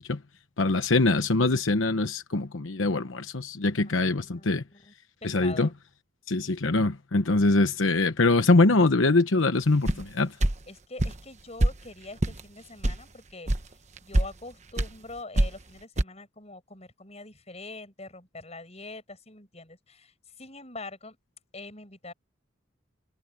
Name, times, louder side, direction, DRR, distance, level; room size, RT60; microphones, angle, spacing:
voice 1, 0.6-4.6 5.2-5.7 6.3-10.3, left 2 dB, 80° left, 1.0 m, -23 dB
voice 2, 3.8-4.9 5.2-5.7 10.7-13.5 14.0-21.2 21.5-22.1, left 2 dB, 35° left, 7.6 m, -44 dB
sound 1, 9.9-10.0 10.4-10.6 11.0-11.2 11.6-11.8 12.2-12.4 12.8-13.0 13.5-13.6 14.0-14.3 14.8-14.9 15.4-15.6 16.0-16.1, right 1 dB, 35° right, 1.1 m, -23 dB
head